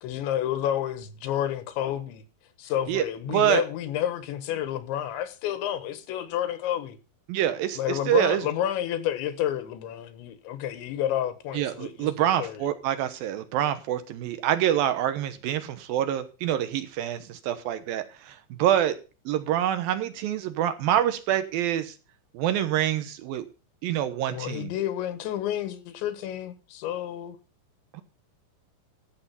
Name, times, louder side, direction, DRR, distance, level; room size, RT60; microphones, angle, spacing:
voice 1, 0.0-2.2 2.6-7.0 7.8-12.6 24.3-27.4, left 11 dB, 80° left, 3.6 m, -30 dB
voice 2, 3.3-3.6 7.3-8.4 11.5-19.0 19.3-21.9 22.3-23.4 23.8-24.7 27.9-28.0, right 11 dB, 70° right, 2.4 m, -26 dB
15.0 x 6.8 x 5.8 m
omnidirectional pair, 5.3 m